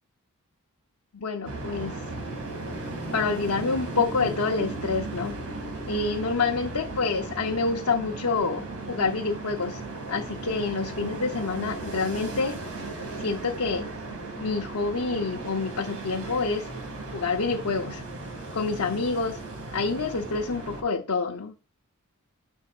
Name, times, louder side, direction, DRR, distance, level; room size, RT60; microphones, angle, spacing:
voice 1, 1.1-2.0 3.1-5.4 5.9-9.8 10.1-12.6 13.2-13.9 14.4-16.7 17.1-18.0 18.5-19.4 19.7-21.5, left 4 dB, 70° left, 0.8 m, -27 dB
sound 1, 1.4-20.8, right 2 dB, 80° right, 2.6 m, -36 dB
10.5 x 6.4 x 2.5 m
head